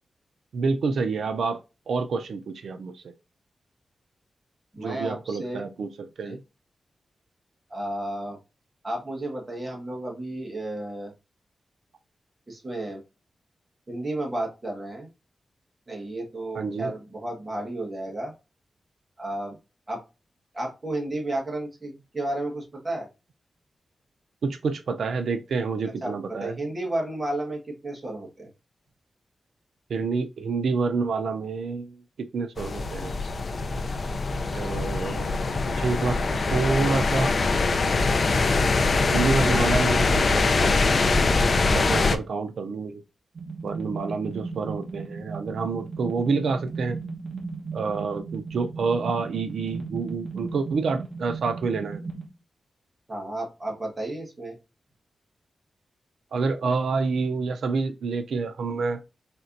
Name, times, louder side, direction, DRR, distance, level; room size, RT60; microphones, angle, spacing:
voice 1, 0.5-3.1 4.8-6.4 16.5-16.9 24.4-26.6 29.9-32.0 32.3-33.1 34.5-36.2 36.5-37.3 39.1-41.3 41.7-43.0 43.6-47.0 47.7-52.0 56.3-59.0, right 4 dB, 85° right, 0.4 m, -28 dB
voice 2, 4.7-5.6 6.2-6.4 7.7-8.4 8.8-11.1 12.5-13.0 13.9-15.1 15.9-18.3 19.2-19.6 19.9-20.0 20.5-23.1 26.0-28.5 53.1-54.5, right 1 dB, 20° right, 1.4 m, -32 dB
sound 1, 32.6-42.2, left 3 dB, 40° left, 0.4 m, -23 dB
sound 2, 43.3-52.3, right 4 dB, 50° right, 1.1 m, -36 dB
4.3 x 3.2 x 2.5 m
wide cardioid pair, 180°, 0 cm